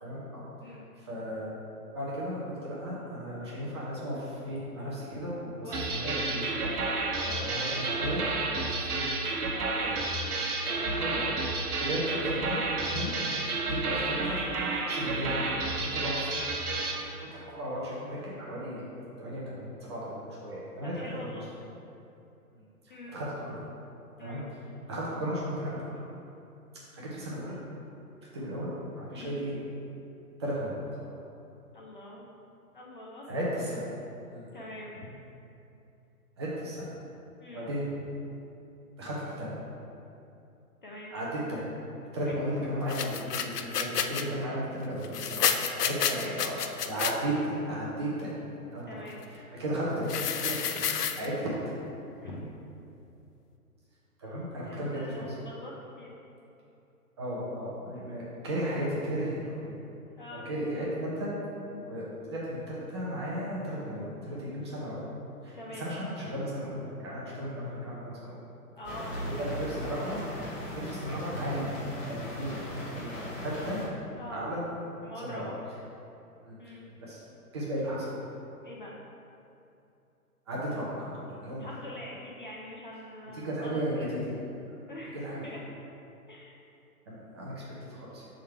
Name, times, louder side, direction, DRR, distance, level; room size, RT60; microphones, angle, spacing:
voice 1, 0.0-1.5 1.9-6.8 7.2-8.2 8.5-9.1 10.7-11.3 11.8-12.6 12.9-13.1 13.6-14.4 14.9-16.5 17.2-18.8 19.2-21.3 22.5-23.6 24.2-24.4 24.9-26.0 26.9-27.6 28.3-29.5 30.4-31.1 33.3-33.8 34.3-34.4 36.4-36.9 37.5-37.9 39.0-39.5 41.1-41.6 42.1-45.5 45.8-48.3 48.7-49.0 49.3-50.8 51.2-51.6 54.2-55.3 57.2-59.6 60.3-61.3 61.6-65.0 65.4-68.3 69.4-71.7 72.1-72.6 72.9-73.1 73.4-73.8 74.3-74.6 75.2-75.5 76.4-76.6 77.0-77.2 77.5-78.2 80.5-81.7 83.3-84.3 85.1-85.4 87.1-87.5 87.8-88.2, equal, 20° right, -7 dB, 0.7 m, -35 dB
voice 2, 5.6-6.1 9.5-9.8 10.7-11.0 11.9-12.1 13.8-14.0 20.8-21.5 22.9-23.2 24.2-24.5 29.1-29.4 31.7-32.3 32.7-33.3 34.5-35.1 37.4-37.7 40.8-41.1 42.2-42.4 46.1-46.4 48.9-49.2 52.2-52.5 54.6-56.1 60.2-60.5 65.5-65.8 68.8-69.5 74.2-74.5 75.0-75.5 76.6-76.9 78.6-79.0 81.6-84.2 84.9-85.2 85.4-85.6 86.3-86.6, left 1 dB, 35° left, -3 dB, 0.5 m, -44 dB
sound 1, 5.7-17.0, right 3 dB, 70° right, 1.1 m, -31 dB
sound 2, 42.9-44.2 45.0-47.1 50.1-51.3, left 7 dB, 80° left, 0.6 m, -30 dB
sound 3, 68.8-73.9, equal, 15° left, 1.1 m, -38 dB
6.3 x 3.8 x 4.4 m, 2.8 s
hypercardioid pair, 150°, 46 cm